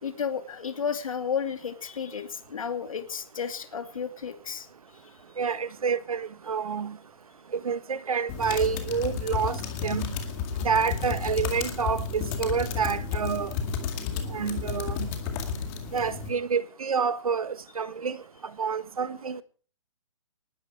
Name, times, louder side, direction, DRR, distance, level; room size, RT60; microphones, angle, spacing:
voice 1, 0.0-4.7, left 7 dB, 65° left, 2.5 m, -32 dB
voice 2, 5.4-7.0 7.5-10.1 10.6-13.5 14.3-15.1 15.9-18.2 18.6-19.4, right 6 dB, 80° right, 1.6 m, -28 dB
sound 1, 8.3-16.3, left 6 dB, 20° left, 2.1 m, -32 dB
20.0 x 12.5 x 4.9 m
hypercardioid pair, 170°, 18 cm